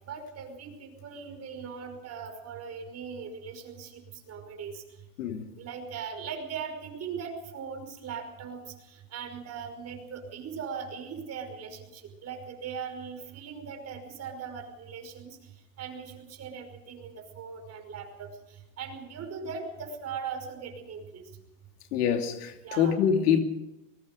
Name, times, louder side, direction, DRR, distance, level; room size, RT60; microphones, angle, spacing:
voice 1, 0.1-4.8 5.6-15.5 15.8-21.3 22.6-23.0, right 6 dB, 35° right, 5.5 m, -40 dB
voice 2, 21.9-23.4, left 8 dB, 85° left, 2.8 m, -25 dB
24.5 x 20.5 x 5.3 m
supercardioid pair, 115°, 45 cm